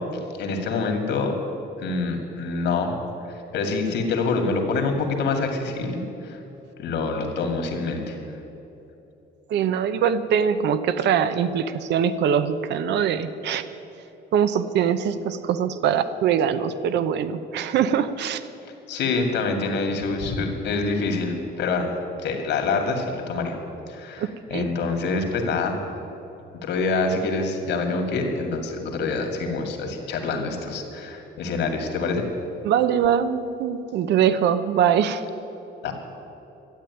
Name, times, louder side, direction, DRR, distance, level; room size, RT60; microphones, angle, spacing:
voice 1, 0.4-1.3 1.8-3.0 3.3-6.4 6.8-8.2 18.9-21.9 22.2-23.6 23.9-25.8 26.6-32.2 35.8-35.9, left 3 dB, 75° left, 3 dB, 2.3 m, -26 dB
voice 2, 9.5-13.6 14.3-18.4 24.2-24.6 32.6-35.2, right 8 dB, 75° right, 12 dB, 0.8 m, -22 dB
13.0 x 8.8 x 9.7 m, 3.0 s
cardioid pair, 150°, 18 cm